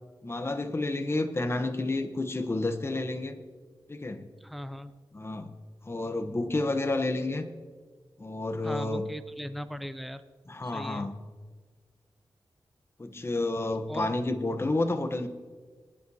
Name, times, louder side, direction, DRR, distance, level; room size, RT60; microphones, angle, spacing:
voice 1, 0.2-3.4 3.9-4.3 5.1-5.5 5.8-7.5 8.2-9.0 10.5-11.1 13.0-15.3, left 2 dB, 30° left, 8 dB, 1.0 m, -30 dB
voice 2, 4.4-4.9 8.6-10.2 10.6-11.1 13.9-14.1, equal, ahead, 11 dB, 0.6 m, -38 dB
21.5 x 11.0 x 2.8 m, 1.5 s
wide cardioid pair, 90°, 8 cm